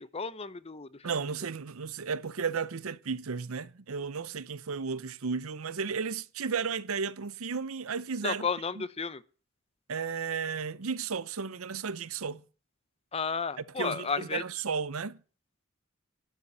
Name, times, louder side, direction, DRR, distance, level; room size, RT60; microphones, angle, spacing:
voice 1, 0.0-0.9 8.2-9.2 13.1-14.4, left 5 dB, 30° left, 0.7 m, -33 dB
voice 2, 1.0-8.5 8.8-8.9 9.9-12.4 13.8-15.2, right 5 dB, 85° right, 0.8 m, -34 dB
12.0 x 7.0 x 9.5 m
head